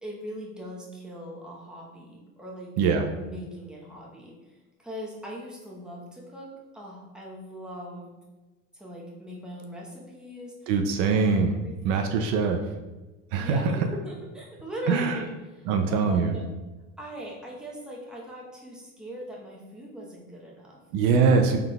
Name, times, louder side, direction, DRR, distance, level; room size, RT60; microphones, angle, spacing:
voice 1, 0.0-2.7 3.1-8.1 8.7-10.7 11.0-12.2 13.3-16.5 17.0-20.8, equal, ahead, -4 dB, 0.9 m, -40 dB
voice 2, 10.7-11.5 11.8-12.6 13.3-13.8 14.9-15.2 15.7-16.4 20.9-21.6, right 5 dB, 70° right, 4 dB, 0.5 m, -22 dB
3.7 x 3.4 x 2.3 m, 1.1 s
hypercardioid pair, 85°, 38 cm